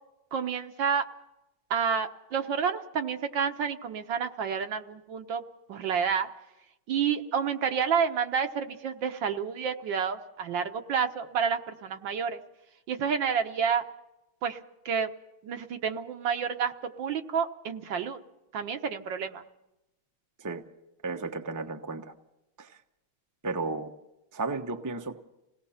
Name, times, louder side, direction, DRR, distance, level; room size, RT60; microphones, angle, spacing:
voice 1, 0.3-1.0 1.7-5.4 5.7-6.3 6.9-12.4 12.9-13.8 14.4-14.6 14.8-15.1 15.4-18.2 18.5-19.4, right 7 dB, 65° right, 7 dB, 1.7 m, -29 dB
voice 2, 21.0-22.1 22.6-22.8 23.4-23.9 24.3-25.2, right 3 dB, 15° right, 4 dB, 0.7 m, -33 dB
27.5 x 18.0 x 5.7 m, 0.92 s
omnidirectional pair, 2.2 m